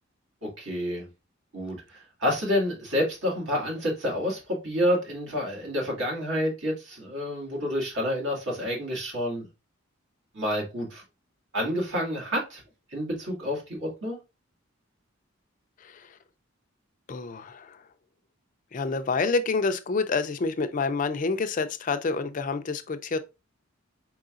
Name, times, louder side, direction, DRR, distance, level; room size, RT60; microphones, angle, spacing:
voice 1, 0.4-1.1 1.5-9.4 10.3-11.0 11.5-12.6 12.9-14.2, equal, 65° right, 1.9 m, -29 dB
voice 2, 15.8-16.2 17.1-17.9 18.7-23.2, left 4 dB, 40° left, 0.4 m, -28 dB
4.7 x 3.9 x 2.4 m
head